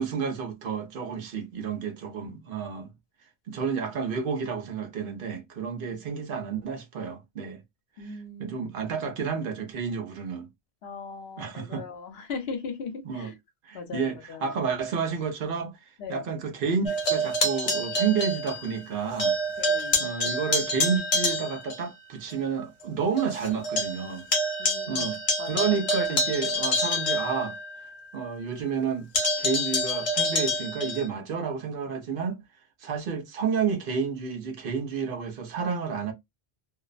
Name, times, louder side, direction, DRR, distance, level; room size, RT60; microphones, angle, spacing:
voice 1, 0.0-2.9 3.5-7.6 8.0-10.5 11.4-11.8 13.0-13.3 13.6-15.8 16.1-19.3 20.0-24.3 24.9-27.6 28.1-29.1 29.4-32.4 32.8-36.1, right 6 dB, 65° right, 0.8 m, -30 dB
voice 2, 8.0-8.6 10.8-13.3 13.7-14.5 16.0-16.2 19.6-20.0 24.6-25.1 25.4-25.8, left 5 dB, 75° left, 1.0 m, -38 dB
sound 1, 16.9-18.9 19.2-21.8 22.3-22.4 22.8-22.9 23.2-28.0 29.1-31.1, left 1 dB, 40° left, 0.8 m, -27 dB
2.5 x 2.0 x 2.4 m
omnidirectional pair, 1.1 m